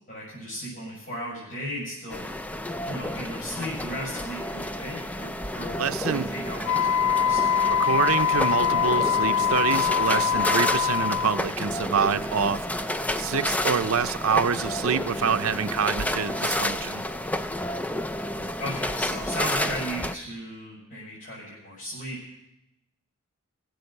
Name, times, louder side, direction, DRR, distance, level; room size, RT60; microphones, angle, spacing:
voice 1, 0.1-2.3 2.8-5.8 6.1-7.9 18.6-22.2, equal, 40° left, -8 dB, 6.0 m, -36 dB
sound 1, 2.1-20.2, left 1 dB, 5° left, 0.5 m, -30 dB
voice 2, 5.8-6.3 7.7-17.0 18.4-18.5, right 6 dB, 70° right, 10 dB, 0.6 m, -26 dB
Wind instrument woodwind instrument, 6.6-11.4, left 8 dB, 85° left, 0.7 m, -23 dB
21.5 x 7.9 x 6.7 m, 0.89 s
head